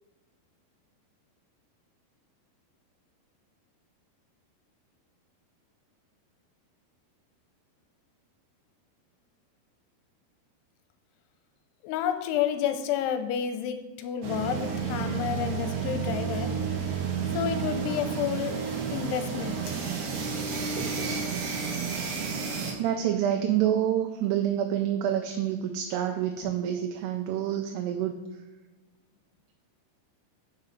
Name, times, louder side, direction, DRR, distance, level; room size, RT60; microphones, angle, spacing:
voice 1, 11.8-16.5 17.3-18.6 18.9-19.6, left 9 dB, 85° left, 8 dB, 2.7 m, -30 dB
sound 1, 14.2-22.7, right 6 dB, 65° right, 2.3 m, -31 dB
voice 2, 22.8-28.2, right 10 dB, 85° right, 4 dB, 2.6 m, -27 dB
6.1 x 5.7 x 5.1 m, 1.2 s
omnidirectional pair, 4.7 m